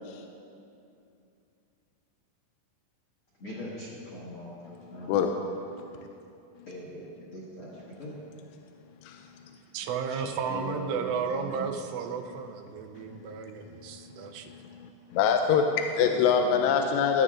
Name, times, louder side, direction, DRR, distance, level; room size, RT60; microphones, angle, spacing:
voice 1, 3.4-5.1 6.7-7.0 7.3-8.2 10.1-11.8 16.0-16.8, left 1 dB, 55° left, -7 dB, 1.6 m, -40 dB
voice 2, 9.7-14.5, right 6 dB, 85° right, 5 dB, 2.8 m, -33 dB
voice 3, 14.5-17.2, left 7 dB, 85° left, 4 dB, 2.7 m, -25 dB
16.0 x 11.5 x 2.5 m, 2.6 s
omnidirectional pair, 4.9 m